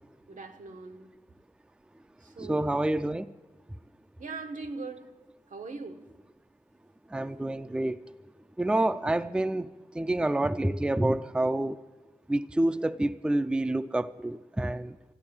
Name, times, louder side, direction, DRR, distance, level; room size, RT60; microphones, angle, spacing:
voice 1, 0.3-1.1 2.2-3.0 4.2-5.1 5.5-6.1, right 3 dB, 80° right, 1.1 m, -41 dB
voice 2, 2.4-3.3 7.1-8.0 8.6-11.8 12.3-15.0, right 1 dB, 5° right, 0.4 m, -28 dB
13.0 x 12.5 x 8.8 m
wide cardioid pair, 90°, 13 cm